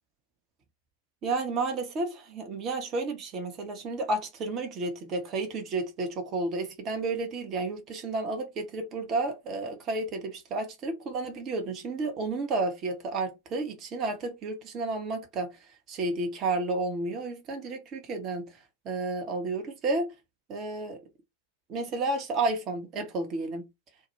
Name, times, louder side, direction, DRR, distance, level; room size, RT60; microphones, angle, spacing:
voice 1, 1.2-15.5 15.9-18.5 18.8-20.1 20.5-21.0 21.7-23.7, right 3 dB, 30° right, 0.7 m, -31 dB
2.2 x 2.1 x 3.1 m
figure-of-eight pair, 90°, 0 cm